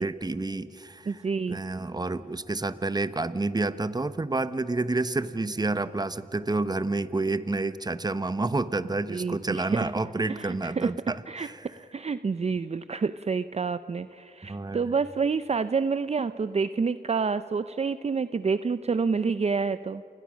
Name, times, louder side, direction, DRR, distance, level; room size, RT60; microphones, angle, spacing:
voice 1, 0.0-1.2 1.5-11.5 14.5-14.9, right 2 dB, 25° right, 13 dB, 1.0 m, -29 dB
voice 2, 1.1-1.6 9.1-9.9 10.3-10.9 11.3-11.5 11.8-20.0, right 5 dB, 45° right, 13 dB, 0.6 m, -28 dB
28.5 x 21.0 x 6.3 m, 2.6 s
cardioid pair, 55°, 15 cm